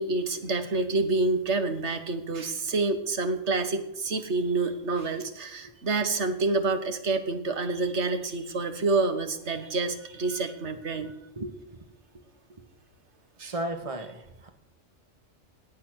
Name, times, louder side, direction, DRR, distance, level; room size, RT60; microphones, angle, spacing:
voice 1, 0.0-11.1 13.4-13.5, right 3 dB, 70° right, 9 dB, 1.7 m, -28 dB
voice 2, 10.9-11.8 12.1-12.2 12.6-12.7 13.4-14.5, right 1 dB, 30° right, 7 dB, 1.5 m, -37 dB
17.5 x 8.6 x 6.3 m, 0.87 s
omnidirectional pair, 1.2 m